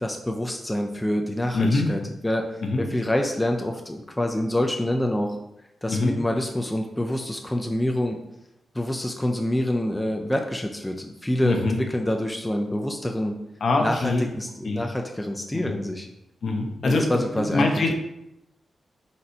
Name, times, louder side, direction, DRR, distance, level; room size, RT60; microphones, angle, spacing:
voice 1, 0.0-2.4 2.8-5.4 5.8-8.2 8.7-13.4 13.8-16.1 16.8-17.9, left 1 dB, 10° left, 2 dB, 0.4 m, -26 dB
voice 2, 1.5-1.9 2.6-2.8 5.9-6.1 11.4-11.8 13.6-14.3 14.6-14.8 15.5-15.8 16.4-17.9, left 3 dB, 60° left, 2 dB, 0.7 m, -24 dB
4.1 x 2.6 x 4.3 m, 0.85 s
wide cardioid pair, 110°, 0 cm